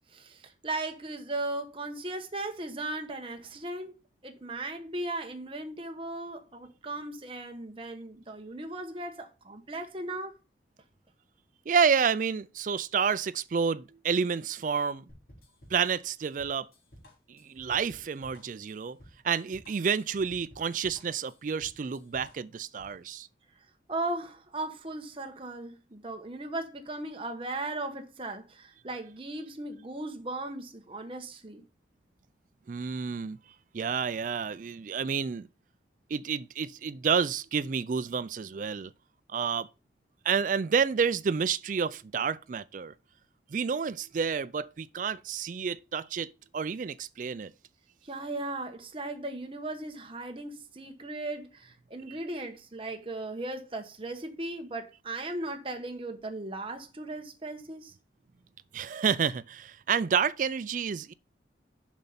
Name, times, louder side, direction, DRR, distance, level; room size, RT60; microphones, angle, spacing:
voice 1, 0.1-3.9 4.2-10.3 23.9-31.6 48.0-57.9, right 2 dB, 30° right, 1.1 m, -37 dB
voice 2, 11.7-15.0 15.7-16.7 17.3-19.0 19.2-23.3 32.7-33.4 33.7-35.5 36.1-38.9 39.3-39.7 40.2-42.9 43.5-47.5 52.1-52.2 58.7-61.1, right 6 dB, 45° right, 0.4 m, -29 dB
sound 1, 15.1-23.0, equal, 55° left, 3.1 m, -54 dB
7.3 x 5.3 x 5.7 m
head